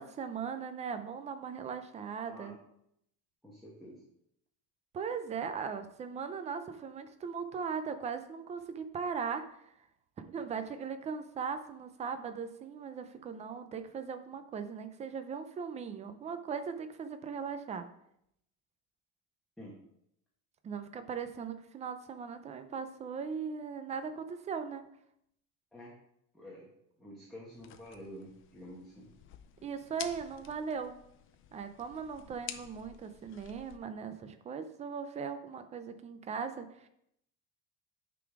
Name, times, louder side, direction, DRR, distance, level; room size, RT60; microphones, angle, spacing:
voice 1, 0.0-2.5 4.9-9.7 10.2-17.9 20.6-24.8 29.6-31.0 31.5-36.9, right 6 dB, 20° right, 9 dB, 0.4 m, -39 dB
voice 2, 3.4-4.0 10.4-10.6 19.6-19.7 25.7-25.9 26.3-26.7 27.0-29.1, equal, ahead, -6 dB, 1.1 m, -49 dB
sound 1, 27.5-33.8, left 10 dB, 35° left, 0.5 m, -50 dB
9.1 x 4.0 x 4.7 m, 0.76 s
cardioid pair, 180°, 35 cm